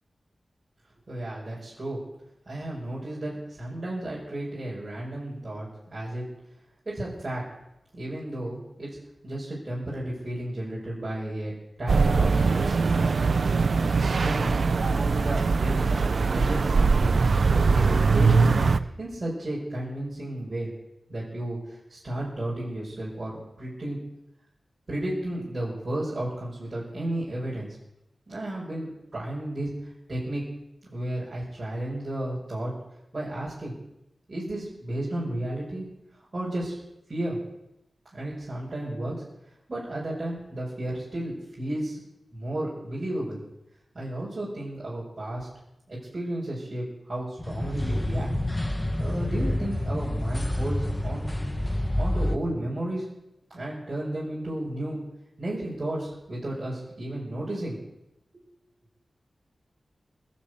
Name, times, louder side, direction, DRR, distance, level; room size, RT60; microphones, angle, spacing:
voice 1, 1.1-2.0 2.5-6.3 6.9-7.5 7.9-9.0 9.2-11.5 11.8-13.1 13.5-18.6 19.0-20.7 21.1-24.0 24.9-27.8 28.3-30.5 30.9-32.7 33.1-33.7 34.3-35.9 36.1-36.8 37.1-37.4 38.1-39.2 39.7-42.0 42.3-43.4 43.9-45.5 45.9-48.3 49.0-51.5 52.0-53.1 53.5-55.0 55.4-57.8 58.3-58.4, right 1 dB, 35° right, -7 dB, 5.4 m, -33 dB
sound 1, 11.9-18.8, right 4 dB, 60° right, 0.6 m, -22 dB
sound 2, 47.4-52.4, left 1 dB, 15° left, 1.1 m, -28 dB
21.0 x 7.3 x 8.0 m, 0.86 s
wide cardioid pair, 130°, 0 cm